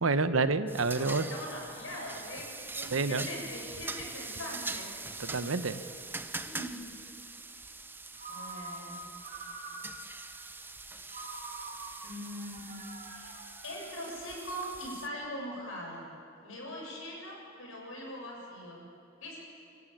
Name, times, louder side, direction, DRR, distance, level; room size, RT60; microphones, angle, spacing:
voice 1, 0.0-1.2 2.9-3.3 5.2-5.8, right 3 dB, 80° right, 12 dB, 1.0 m, -28 dB
sound 1, 0.7-15.1, right 3 dB, 10° right, 0.7 m, -43 dB
voice 2, 0.9-5.0 6.4-6.8 8.3-9.0 12.0-13.3 13.6-16.1 16.4-18.8 19.2-19.4, equal, 75° left, -2 dB, 7.6 m, -41 dB
Ringtone, 8.2-10.3 11.1-14.4, right 3 dB, 40° right, 3.3 m, -46 dB
29.5 x 14.5 x 8.7 m, 2.9 s
head